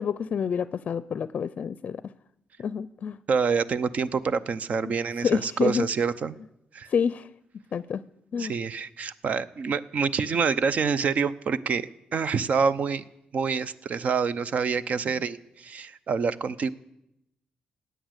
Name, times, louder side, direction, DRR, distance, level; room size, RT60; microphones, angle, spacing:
voice 1, 0.0-2.0 2.6-3.2 4.9-5.0 5.2-5.9 6.9-7.3 7.7-8.0 8.3-8.5, left 7 dB, 55° left, 16 dB, 0.4 m, -28 dB
voice 2, 3.3-6.3 6.7-6.9 8.4-13.0 13.3-16.7, right 5 dB, 55° right, 15 dB, 0.7 m, -27 dB
16.5 x 9.3 x 8.1 m, 0.84 s
cardioid pair, 95°, 3 cm